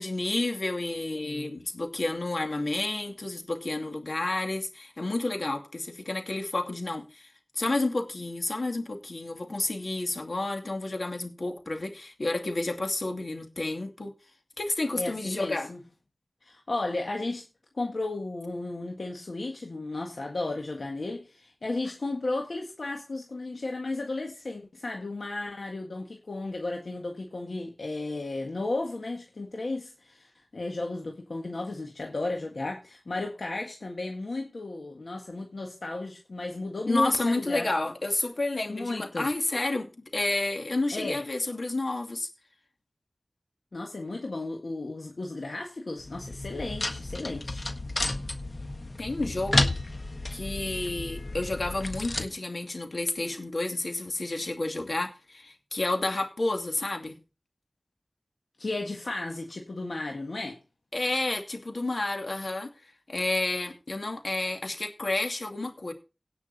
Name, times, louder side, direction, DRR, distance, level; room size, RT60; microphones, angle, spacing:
voice 1, 0.0-7.3 7.6-14.1 14.6-15.7 36.9-42.3 49.0-49.7 50.3-57.2 60.9-65.9, left 2 dB, 70° left, 2.5 m, -30 dB
voice 2, 14.9-15.8 16.4-17.4 17.7-37.7 38.7-39.3 40.9-41.2 43.7-47.6 58.6-60.6, left 2 dB, 90° left, 1.7 m, -34 dB
sound 1, 46.0-52.3, left 2 dB, 55° left, 1.4 m, -32 dB
17.5 x 6.0 x 4.2 m
wide cardioid pair, 55°, 0 cm